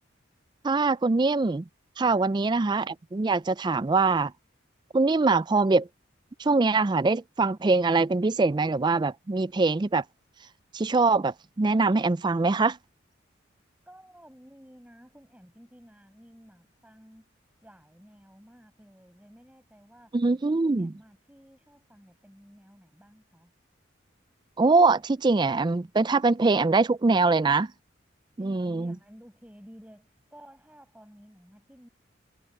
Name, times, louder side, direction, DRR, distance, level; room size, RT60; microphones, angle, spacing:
voice 1, 0.6-1.6 2.0-4.3 4.9-5.9 6.4-10.0 10.7-12.8 20.1-20.9 24.6-27.7 28.4-28.9, right 3 dB, 20° right, 0.4 m, -23 dB
voice 2, 2.1-2.6 13.9-17.3 17.6-20.2 20.5-23.5 28.4-31.9, equal, 5° right, 7.0 m, -53 dB
head